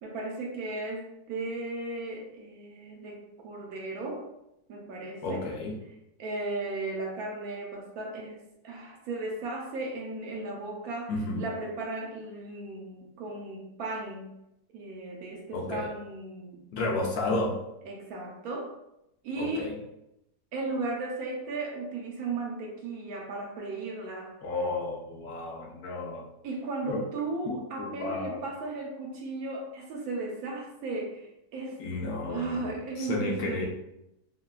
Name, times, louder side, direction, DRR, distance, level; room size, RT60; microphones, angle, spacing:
voice 1, 0.0-4.2 4.7-5.5 6.2-14.3 14.7-17.0 17.9-18.7 19.2-19.8 20.5-24.3 26.4-31.8 32.3-33.7, right 2 dB, 70° right, 0 dB, 1.0 m, -36 dB
voice 2, 5.2-5.8 11.1-11.4 15.5-15.9 16.7-17.6 19.4-19.7 24.4-26.2 26.9-27.0 27.8-28.4 31.8-32.7 33.0-33.7, left 2 dB, 70° left, -1 dB, 1.1 m, -32 dB
3.7 x 2.1 x 2.3 m, 0.85 s
omnidirectional pair, 1.7 m